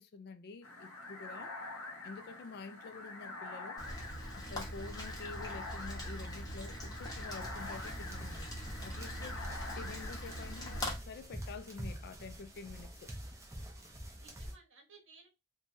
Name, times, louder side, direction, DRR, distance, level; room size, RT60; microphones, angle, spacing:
voice 1, 0.0-1.5 2.0-3.8 4.3-8.5 8.8-9.4 9.8-13.1, left 4 dB, 45° left, 0.3 m, -48 dB
sound 1, 0.6-11.0, left 2 dB, 70° left, 0.8 m, -47 dB
Rain, 3.8-10.9, equal, 20° left, 0.9 m, -42 dB
sound 2, 7.4-14.5, right 1 dB, 15° right, 0.6 m, -47 dB
voice 2, 14.1-15.3, right 4 dB, 60° right, 1.0 m, -61 dB
3.0 x 2.2 x 2.6 m
head